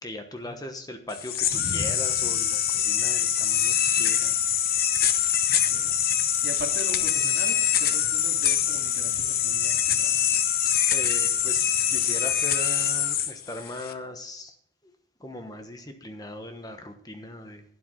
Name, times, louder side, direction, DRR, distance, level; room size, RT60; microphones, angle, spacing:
voice 1, 0.0-4.4 10.9-14.5 14.8-14.9 15.2-17.6, left 1 dB, 20° left, 6 dB, 1.2 m, -39 dB
sound 1, 1.1-13.9, left 10 dB, 50° left, 0.8 m, -24 dB
voice 2, 5.5-10.3, right 1 dB, 65° right, 1 dB, 2.3 m, -41 dB
12.0 x 9.3 x 3.8 m, 0.66 s
head